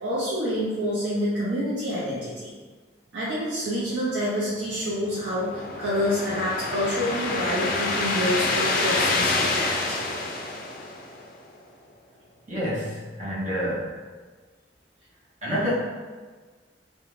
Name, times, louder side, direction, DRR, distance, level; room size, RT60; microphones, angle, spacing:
voice 1, 0.0-2.5 3.1-10.0, equal, 75° right, -9 dB, 0.5 m, -27 dB
sound 1, 4.8-11.4, left 3 dB, 50° left, 0.3 m, -27 dB
voice 2, 12.5-13.9 15.4-15.7, equal, 40° right, -10 dB, 0.8 m, -28 dB
2.4 x 2.2 x 3.1 m, 1.4 s
head